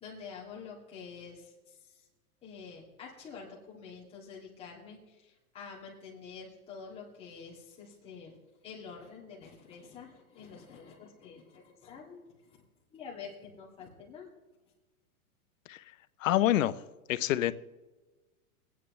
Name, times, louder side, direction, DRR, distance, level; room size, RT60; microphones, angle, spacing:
voice 1, 0.0-2.1 2.4-8.4 8.6-12.6 12.9-14.3, left 5 dB, 15° left, -5 dB, 2.1 m, -48 dB
voice 2, 16.2-16.8 17.1-17.5, left 13 dB, 60° left, 14 dB, 0.7 m, -26 dB
23.5 x 9.3 x 3.2 m, 1.2 s
supercardioid pair, 160°, 44 cm